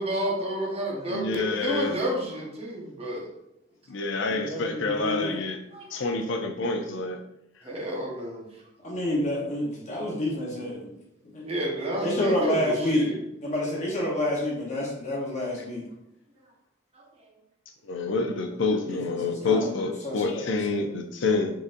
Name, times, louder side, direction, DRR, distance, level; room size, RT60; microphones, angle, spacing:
voice 1, 0.0-3.3 5.7-6.0 7.6-8.6 11.4-13.2 16.9-17.0, right 1 dB, 30° right, -3 dB, 1.0 m, -30 dB
voice 2, 1.1-1.9 3.9-5.6 5.9-7.2 17.9-21.5, left 3 dB, 65° left, 4 dB, 0.5 m, -27 dB
voice 3, 4.2-5.4 8.8-10.9 11.3-11.5 12.0-13.1 13.4-15.8 18.9-20.9, left 1 dB, 35° left, -4 dB, 1.0 m, -29 dB
3.9 x 3.8 x 2.5 m, 0.82 s
head